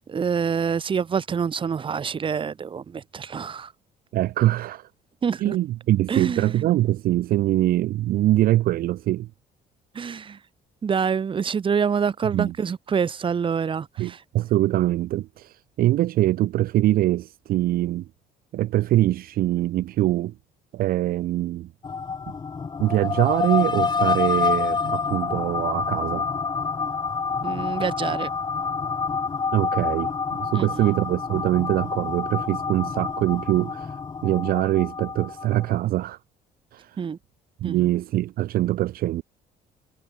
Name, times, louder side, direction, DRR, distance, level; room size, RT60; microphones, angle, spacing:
voice 1, 0.0-3.7 5.2-5.6 6.1-6.6 9.9-10.4 10.8-14.2 27.4-28.3 30.5-30.9 37.0-37.2 37.6-37.9, right 6 dB, 30° right, 0.9 m, -26 dB
voice 2, 4.1-4.9 5.4-9.3 12.3-12.5 14.0-18.0 18.5-20.3 20.7-21.7 22.8-26.2 29.5-30.1 30.4-36.2 36.7-37.0 37.6-39.2, right 15 dB, 60° right, 0.5 m, -23 dB
sound 1, 21.8-35.8, left 5 dB, 25° left, 1.3 m, -27 dB
cardioid pair, 110°, 17 cm